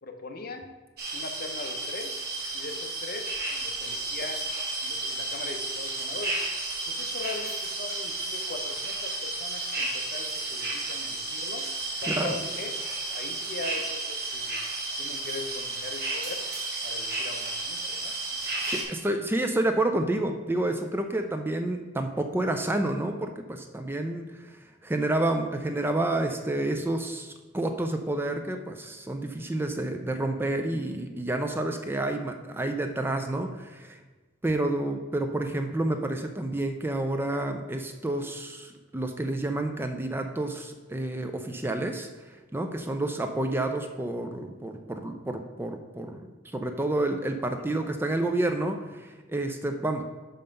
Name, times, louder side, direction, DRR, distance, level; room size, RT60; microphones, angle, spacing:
voice 1, 0.0-0.7 1.1-2.2 2.5-4.4 4.8-6.4 6.9-11.7 12.0-12.7 13.1-14.6 15.0-16.4 16.8-18.4 18.8-18.9 47.5-47.9, left 3 dB, 50° left, 5 dB, 0.7 m, -40 dB
sound 1, 1.0-18.8, right 2 dB, 55° right, 1.8 m, -32 dB
voice 2, 18.4-34.0 34.4-46.2 46.5-50.0, right 1 dB, 10° right, 6 dB, 0.4 m, -29 dB
5.6 x 5.4 x 5.2 m, 1.3 s
head